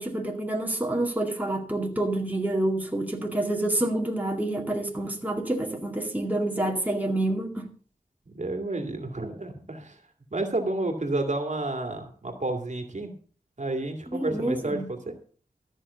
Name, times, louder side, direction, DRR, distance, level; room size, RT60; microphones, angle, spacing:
voice 1, 0.0-7.7 14.2-14.9, right 1 dB, 10° right, 2.1 m, -28 dB
voice 2, 8.3-10.0 10.3-13.1 13.6-15.1, right 2 dB, 50° right, 2.2 m, -30 dB
13.5 x 6.2 x 6.8 m
wide cardioid pair, 80°, 15 cm